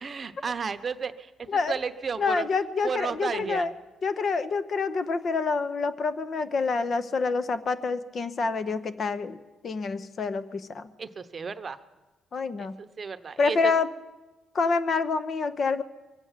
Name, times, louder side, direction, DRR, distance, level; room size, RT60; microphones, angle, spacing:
voice 1, 0.0-2.5 2.8-3.7 11.0-11.8 12.6-13.7, right 5 dB, 40° right, 9 dB, 0.8 m, -33 dB
voice 2, 2.2-3.7 4.0-9.4 9.6-10.9 12.3-12.7 13.4-13.9 14.5-15.8, left 4 dB, 50° left, 13 dB, 0.8 m, -27 dB
23.5 x 8.1 x 7.4 m, 1.2 s
cardioid pair, 90°, 0 cm